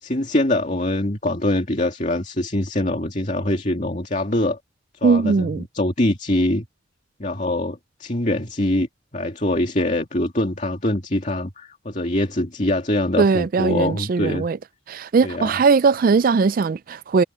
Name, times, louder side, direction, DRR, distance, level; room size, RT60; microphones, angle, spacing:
voice 1, 0.0-4.6 5.0-6.7 7.2-8.9 9.1-14.4 15.2-15.6, left 1 dB, 40° left, 2.5 m, -23 dB
voice 2, 5.0-5.6 13.2-14.6 14.9-17.2, right 4 dB, 50° right, 0.3 m, -19 dB
head